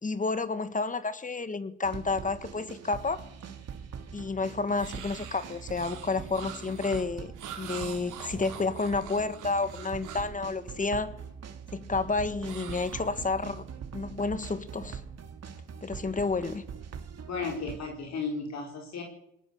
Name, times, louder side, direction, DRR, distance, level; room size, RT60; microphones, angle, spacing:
voice 1, 0.0-3.2 4.1-7.3 7.6-11.1 11.7-13.7 13.9-15.0 15.8-16.6, left 3 dB, 25° left, 12 dB, 1.7 m, -30 dB
sound 1, 1.8-17.8, right 7 dB, 55° right, 3.1 m, -43 dB
sound 2, 4.7-10.4 12.4-13.6, right 9 dB, 85° right, 3.9 m, -45 dB
voice 2, 17.2-19.0, left 4 dB, 60° left, 1 dB, 4.2 m, -34 dB
21.5 x 19.0 x 6.9 m, 0.77 s
cardioid pair, 90°, 30 cm